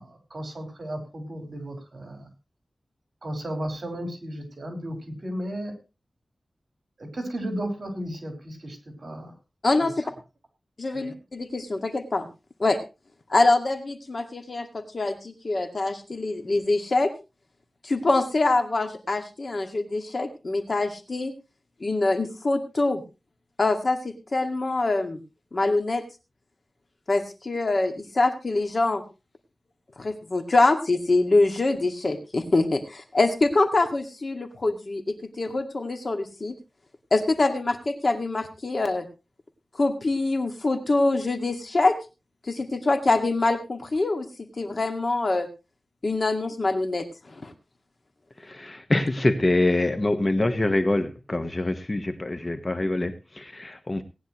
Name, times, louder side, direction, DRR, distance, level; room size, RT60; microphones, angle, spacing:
voice 1, 0.0-2.3 3.2-5.7 7.0-9.3 9.8-9.9 10.9-11.1, right 1 dB, 55° right, 5 dB, 4.4 m, -34 dB
voice 2, 10.8-12.3 12.6-12.8 13.3-17.1 17.8-21.3 21.8-23.0 23.6-25.2 25.5-26.0 27.1-29.0 30.0-35.0 35.4-36.5 37.1-39.1 39.8-42.0 42.5-44.3 44.6-45.5 46.0-47.5, left 2 dB, 50° left, 6 dB, 2.1 m, -24 dB
voice 3, 48.4-54.0, left 2 dB, 30° left, 8 dB, 1.3 m, -25 dB
18.5 x 10.0 x 3.1 m, 0.29 s
wide cardioid pair, 90°, 0 cm